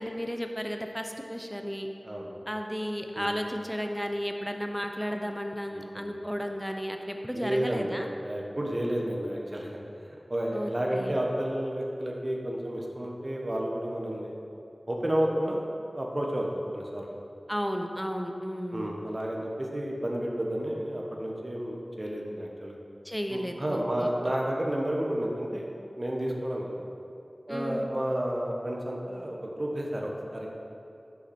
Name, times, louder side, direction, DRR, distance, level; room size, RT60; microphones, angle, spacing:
voice 1, 0.0-1.9 2.5-8.1 10.5-11.2 17.5-18.9 23.0-24.1 27.5-27.9, equal, ahead, 4 dB, 0.7 m, -33 dB
voice 2, 2.0-2.3 3.1-3.3 5.7-6.1 7.3-9.8 10.1-14.3 14.9-15.6 15.9-17.1 18.7-22.8 23.3-25.7 25.9-26.9 27.5-30.5, right 1 dB, 40° right, -1 dB, 1.3 m, -31 dB
11.0 x 6.0 x 4.4 m, 2.7 s
wide cardioid pair, 55°, 0 cm